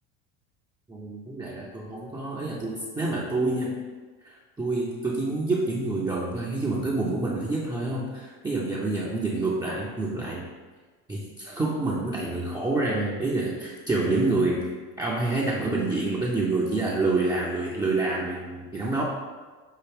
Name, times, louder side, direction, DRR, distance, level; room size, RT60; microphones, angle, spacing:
voice 1, 0.9-3.8 4.2-10.5 11.1-14.7 15.0-19.0, right 2 dB, 10° right, -6 dB, 0.5 m, -27 dB
5.7 x 2.5 x 3.3 m, 1.4 s
supercardioid pair, 90°, 44 cm